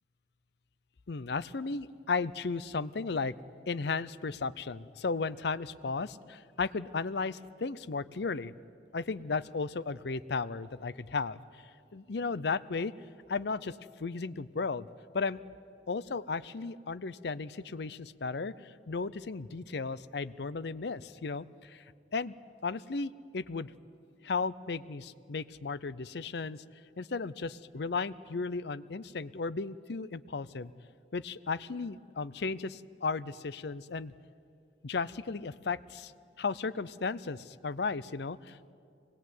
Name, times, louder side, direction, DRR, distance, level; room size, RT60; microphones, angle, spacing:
voice 1, 1.1-3.3 3.7-8.5 8.9-11.4 11.9-12.9 13.3-14.9 15.1-15.4 15.9-21.8 22.1-22.3 22.6-23.7 24.2-26.6 27.0-30.7 31.1-34.1 34.8-36.1 36.4-38.7, left 4 dB, 65° left, 17 dB, 0.6 m, -35 dB
24.5 x 20.0 x 9.3 m, 2.5 s
head